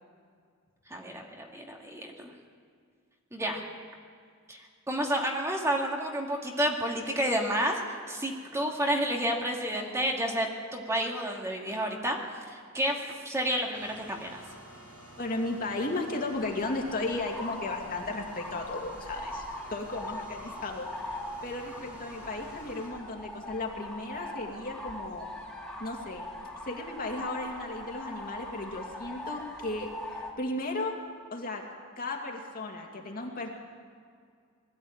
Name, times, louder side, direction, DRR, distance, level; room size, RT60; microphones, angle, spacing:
voice 1, 0.9-2.3 3.3-3.6 4.5-4.6 4.9-12.2 12.5-14.4, equal, 15° right, 0 dB, 1.9 m, -30 dB
sound 1, 13.7-22.9, right 1 dB, 70° right, 5.3 m, -50 dB
voice 2, 15.2-19.4 19.7-21.2 21.4-25.3 25.8-26.3 26.6-31.0 31.3-31.6 32.0-33.5, left 2 dB, 45° left, 1 dB, 2.5 m, -35 dB
sound 2, 16.3-30.3, left 1 dB, 5° left, 2.6 m, -41 dB
20.5 x 14.0 x 8.9 m, 2.1 s
head